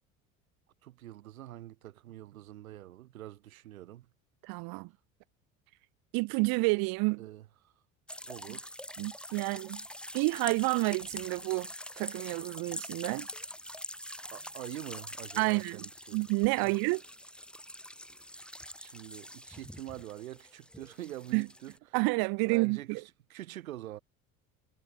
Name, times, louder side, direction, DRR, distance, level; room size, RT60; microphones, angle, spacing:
voice 1, 0.8-4.1 7.2-7.7 8.3-8.8 14.3-16.2 16.6-16.7 18.8-21.7 22.4-23.0 23.3-24.0, right 14 dB, 80° right, 5.4 m, -45 dB
voice 2, 4.4-4.9 6.1-7.3 9.0-9.8 10.1-11.7 12.0-13.3 15.4-15.8 16.1-17.0 21.3-21.5 21.9-23.0, right 28 dB, 60° right, 1.0 m, -29 dB
sound 1, 8.1-21.8, equal, ahead, 5.5 m, -45 dB
hypercardioid pair, 65°, 41 cm